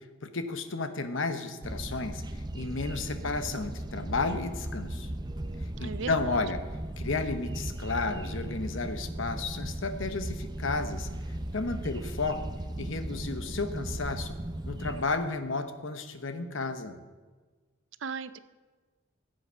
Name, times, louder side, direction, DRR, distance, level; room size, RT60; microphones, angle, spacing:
voice 1, 0.2-5.1 5.8-6.6 7.0-11.1 11.5-12.5 12.8-14.3 14.7-17.0, left 3 dB, 70° left, 9 dB, 0.9 m, -32 dB
sound 1, 1.6-15.0, right 1 dB, 20° right, 0.5 m, -37 dB
voice 2, 5.8-6.4 18.0-18.4, right 5 dB, 65° right, 14 dB, 0.5 m, -36 dB
15.0 x 7.8 x 5.6 m, 1.4 s
head